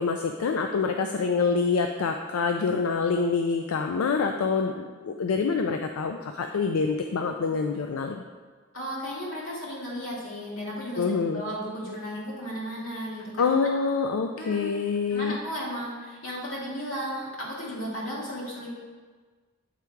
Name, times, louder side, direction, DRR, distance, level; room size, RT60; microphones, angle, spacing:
voice 1, 0.0-8.2 11.0-11.4 13.4-15.4, left 5 dB, 90° left, 5 dB, 0.4 m, -26 dB
voice 2, 8.7-11.0 11.3-13.4 14.4-14.8 15.1-18.7, equal, 70° left, -5 dB, 2.1 m, -34 dB
8.3 x 3.6 x 4.5 m, 1.5 s
head